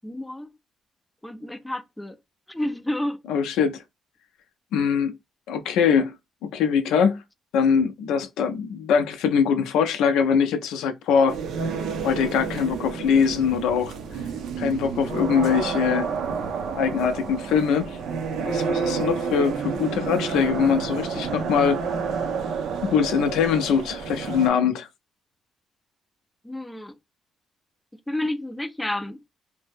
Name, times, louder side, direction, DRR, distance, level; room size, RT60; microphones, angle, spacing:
voice 1, 0.0-0.5 1.2-2.2 2.5-3.2 26.4-27.0 28.1-29.2, left 1 dB, 10° left, 0.4 m, -30 dB
voice 2, 3.3-3.8 4.7-5.2 5.5-6.1 6.4-7.2 7.5-11.4 12.0-13.9 14.6-16.1 16.7-18.0 18.4-21.8 22.8-24.9, left 7 dB, 90° left, 0.4 m, -22 dB
sound 1, 11.3-24.5, right 5 dB, 80° right, 0.5 m, -29 dB
2.6 x 2.0 x 3.3 m
cardioid pair, 90°, 0 cm